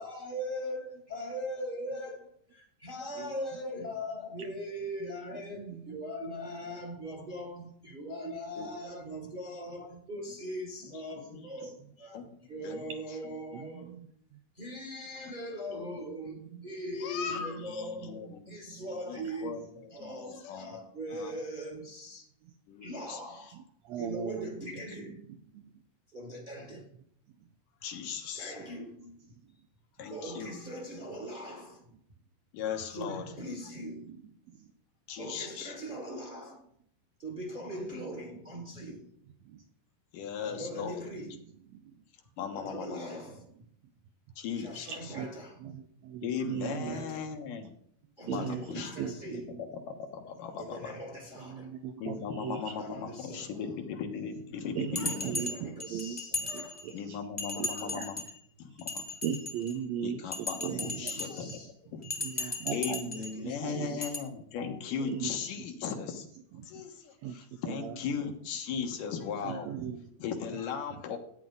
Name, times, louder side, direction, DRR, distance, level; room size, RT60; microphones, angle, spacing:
voice 1, 0.0-14.0 14.5-19.5 19.9-22.3 22.8-23.6 24.0-25.2 26.1-26.9 28.3-29.2 30.1-31.9 32.9-34.2 35.2-36.6 37.2-39.1 40.4-41.4 42.5-43.4 44.5-45.6 46.6-47.3 48.2-49.6 50.6-51.8 52.8-53.7 55.1-56.9 60.7-61.7 63.1-64.1, equal, 25° right, 1.1 m, -41 dB
voice 2, 5.5-6.0 7.5-7.7 8.3-8.4 11.6-11.7 13.5-14.1 16.5-16.7 18.5-18.8 22.4-22.5 23.5-24.6 25.5-25.6 34.1-34.2 34.5-34.7 39.5-39.6 44.9-45.3 45.6-47.1 48.3-48.6 49.0-49.6 51.4-52.7 54.7-57.2 57.6-58.1 59.2-61.1 62.2-63.2 63.4-64.0 65.0-65.3 65.6-65.7 67.2-67.4 67.7-68.0 69.4-70.1, right 8 dB, 75° right, 1.6 m, -38 dB
voice 3, 10.8-11.5 12.1-12.8 13.1-13.2 15.1-15.2 15.6-15.8 17.0-20.8 21.1-21.4 22.7-23.2 24.8-24.9 27.8-28.5 30.0-30.6 32.5-33.2 35.1-35.8 40.1-41.1 42.4-43.3 44.4-45.2 46.2-47.7 48.3-48.9 49.9-51.0 52.0-55.4 56.9-58.2 58.6-59.1 60.0-62.1 62.4-66.3 66.6-69.7 70.2-71.2, left 6 dB, 80° left, 2.9 m, -38 dB
Bell, 55.0-57.0 57.4-58.4 58.8-59.8 60.3-61.6 62.0-63.4 64.0-64.2, left 3 dB, 5° left, 1.2 m, -36 dB
13.5 x 9.3 x 3.9 m
omnidirectional pair, 3.8 m